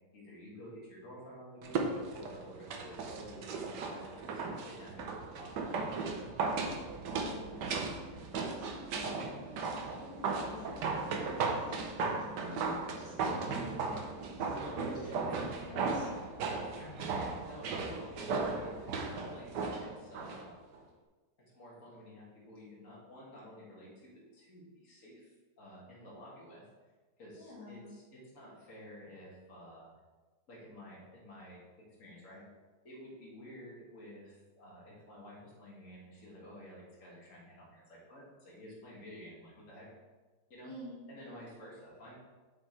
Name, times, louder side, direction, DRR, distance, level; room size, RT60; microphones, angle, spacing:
voice 1, 0.1-6.2 14.6-15.5 16.6-20.6 21.5-26.6 27.2-29.9 30.5-32.4 32.8-39.9 40.5-40.7 41.1-42.1, equal, 45° left, -6 dB, 2.5 m, -51 dB
sound 1, 1.6-20.4 20.7-20.8, right 4 dB, 70° right, 1.4 m, -36 dB
voice 2, 7.1-7.7 8.4-10.7 11.1-14.5 14.8-15.1 15.7-16.1 27.3-28.0 40.6-41.4, left 1 dB, 65° left, -8 dB, 2.4 m, -49 dB
8.0 x 6.4 x 3.4 m, 1.3 s
omnidirectional pair, 2.0 m